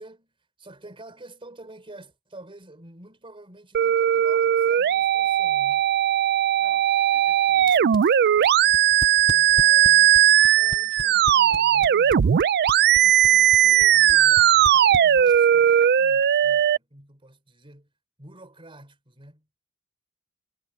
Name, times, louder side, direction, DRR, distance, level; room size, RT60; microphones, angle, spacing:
voice 1, 0.0-5.9 9.3-12.5 13.0-17.9 18.2-19.5, right 2 dB, 25° right, 4.0 m, -48 dB
sound 1, 3.7-16.8, right 10 dB, 50° right, 0.4 m, -18 dB
voice 2, 6.6-8.0 9.5-9.8 14.6-14.7, left 1 dB, 5° left, 6.3 m, -55 dB
sound 2, 7.6-15.5, left 2 dB, 20° left, 0.4 m, -36 dB
head